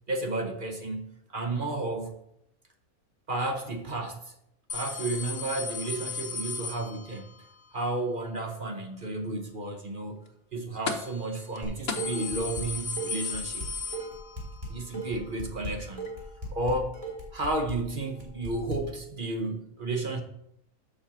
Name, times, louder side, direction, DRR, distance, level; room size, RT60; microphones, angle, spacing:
voice 1, 0.1-2.1 3.3-4.3 4.7-7.3 7.7-10.2 10.5-13.7 14.7-16.2 16.5-17.0 17.3-20.2, right 2 dB, 40° right, 1.0 m, -32 dB
sound 1, 4.7-7.4 10.9-11.3 11.5-11.6 11.9-14.6 14.9-15.0 16.1-16.2, left 4 dB, 50° left, 1.0 m, -35 dB
Dishes pots and pans, 11.6-12.7 13.0-18.8, right 1 dB, 20° right, 2.4 m, -37 dB
7.5 x 5.5 x 6.8 m
omnidirectional pair, 1.6 m